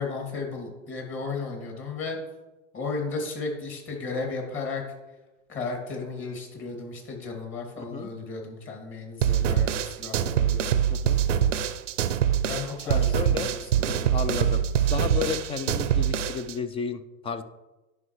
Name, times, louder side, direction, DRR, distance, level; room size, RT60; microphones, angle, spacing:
voice 1, 0.0-2.2 2.7-4.8 5.5-10.8 12.4-14.1, left 4 dB, 35° left, 1 dB, 2.5 m, -34 dB
voice 2, 7.8-8.1 10.9-11.2 12.9-13.5 13.9-14.6 14.9-17.4, left 6 dB, 15° left, 10 dB, 0.3 m, -32 dB
sound 1, 9.2-16.5, right 9 dB, 85° right, 0.6 m, -24 dB
10.5 x 5.6 x 3.1 m, 1.1 s
hypercardioid pair, 95°, 36 cm